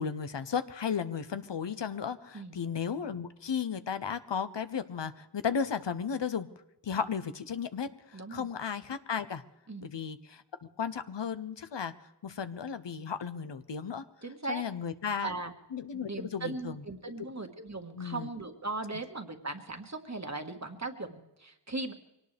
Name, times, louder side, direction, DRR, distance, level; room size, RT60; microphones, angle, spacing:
voice 1, 0.0-6.5 6.8-9.4 9.8-10.4 10.8-11.9 12.2-14.0 14.5-15.3 15.7-16.8 17.9-18.3, left 7 dB, 90° left, 11 dB, 0.8 m, -34 dB
voice 2, 8.1-8.5 9.7-9.9 14.2-14.6 15.2-15.5 15.9-21.9, right 3 dB, 40° right, 5 dB, 1.8 m, -38 dB
22.5 x 18.0 x 3.4 m, 0.91 s
wide cardioid pair, 45°, 42 cm